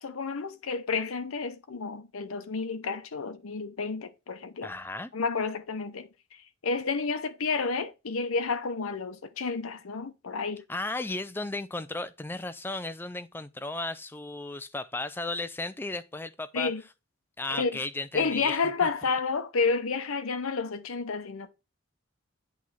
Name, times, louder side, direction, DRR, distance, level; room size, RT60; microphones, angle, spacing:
voice 1, 0.0-4.7 5.1-10.6 16.5-16.8 17.6-17.8 18.1-21.5, left 4 dB, 80° left, 0.7 m, -30 dB
voice 2, 4.6-5.1 10.7-16.7 17.4-18.9, left 2 dB, 10° left, 0.3 m, -35 dB
8.3 x 3.1 x 5.6 m
head